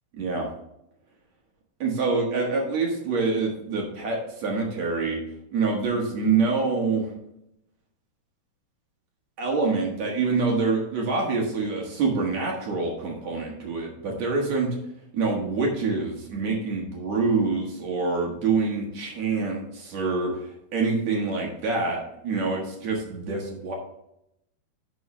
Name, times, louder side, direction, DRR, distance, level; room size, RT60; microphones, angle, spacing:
voice 1, 0.1-0.5 1.8-5.2 5.5-7.1 9.4-14.8 15.1-23.7, right 4 dB, 55° right, -1 dB, 2.3 m, -26 dB
11.0 x 6.2 x 3.2 m, 0.81 s
omnidirectional pair, 4.5 m